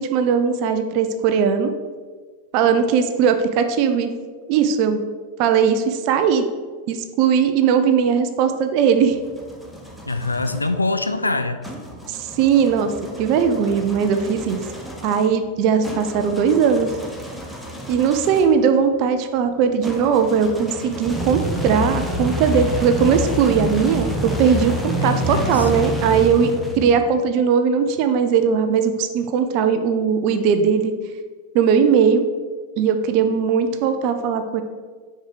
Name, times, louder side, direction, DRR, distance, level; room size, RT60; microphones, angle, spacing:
voice 1, 0.0-1.7 2.5-4.1 4.5-5.0 5.4-6.4 6.9-9.2 12.1-12.9 13.2-14.6 15.0-16.9 17.9-30.9 31.5-32.3 32.8-34.6, right 7 dB, 45° right, 8 dB, 0.6 m, -19 dB
sound 1, 8.9-10.7 11.6-18.6 19.8-27.1, equal, ahead, 1.2 m, -29 dB
voice 2, 10.1-11.6 25.0-25.7, left 2 dB, 80° left, 8 dB, 0.6 m, -24 dB
6.5 x 4.6 x 6.6 m, 1.5 s
figure-of-eight pair, 90°, 0 cm